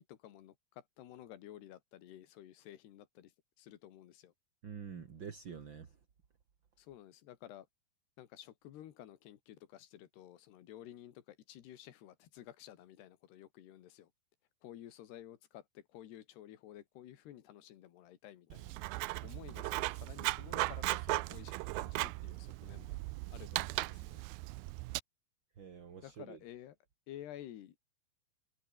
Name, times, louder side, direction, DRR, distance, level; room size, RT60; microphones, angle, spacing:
voice 1, 0.0-3.3 3.6-4.3 6.8-7.7 8.2-14.1 14.6-18.8 19.2-23.0 23.3-24.2 26.0-26.8 27.1-27.9, left 12 dB, 85° left, 3.9 m, -53 dB
voice 2, 4.6-5.9 25.6-26.4, right 7 dB, 40° right, 1.9 m, -47 dB
Writing, 18.5-25.0, right 21 dB, 80° right, 2.4 m, -37 dB
omnidirectional pair, 4.6 m